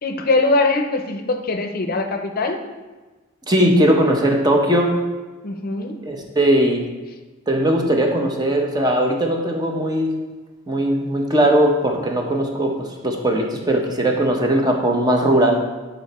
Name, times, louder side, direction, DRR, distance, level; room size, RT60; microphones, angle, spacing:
voice 1, 0.0-2.6 5.4-6.0, left 3 dB, 45° left, 5 dB, 0.6 m, -21 dB
voice 2, 3.5-4.9 6.0-6.8 7.5-10.1 10.7-15.6, right 1 dB, 20° right, 1 dB, 0.9 m, -19 dB
8.5 x 4.1 x 4.3 m, 1.2 s
head